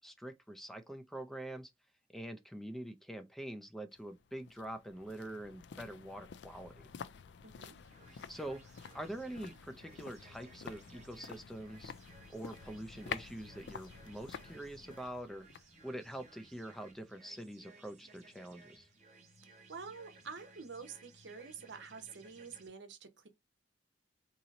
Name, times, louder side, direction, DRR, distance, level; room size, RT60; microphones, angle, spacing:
voice 1, 0.0-1.7 2.1-6.9 8.1-11.9 12.3-15.5 15.8-18.9, right 1 dB, ahead, 0.4 m, -45 dB
sound 1, 3.9-17.1 17.4-17.5, left 7 dB, 70° left, 0.3 m, -50 dB
voice 2, 7.4-7.7 19.7-23.3, right 5 dB, 75° right, 0.7 m, -48 dB
sound 2, 7.7-22.7, right 3 dB, 40° right, 0.9 m, -60 dB
2.9 x 2.6 x 4.0 m
head